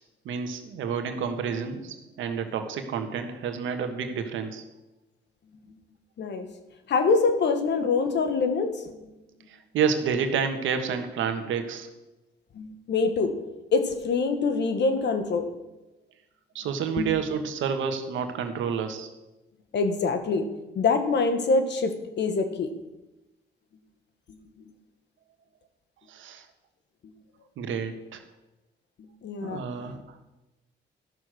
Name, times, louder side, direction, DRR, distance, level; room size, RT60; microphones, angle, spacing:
voice 1, 0.2-4.6 9.7-11.9 16.5-19.1 26.1-26.4 27.6-28.2 29.4-30.0, right 6 dB, 80° right, 6 dB, 1.4 m, -29 dB
voice 2, 6.9-8.9 12.5-13.3 13.7-15.5 17.0-17.1 19.7-20.5 20.7-22.7 29.2-29.9, left 4 dB, 60° left, 8 dB, 1.5 m, -25 dB
12.5 x 6.5 x 6.3 m, 1.0 s
cardioid pair, 90°, 20 cm